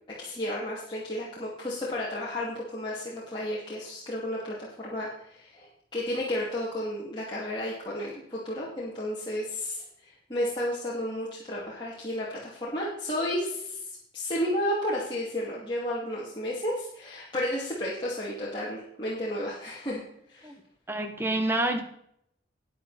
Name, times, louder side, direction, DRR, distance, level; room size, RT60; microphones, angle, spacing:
voice 1, 0.2-13.8 14.1-20.0 20.3-20.5, left 1 dB, 25° left, -7 dB, 2.7 m, -32 dB
voice 2, 20.9-21.8, right 1 dB, 15° right, 6 dB, 1.3 m, -27 dB
11.5 x 9.6 x 4.3 m, 0.70 s
head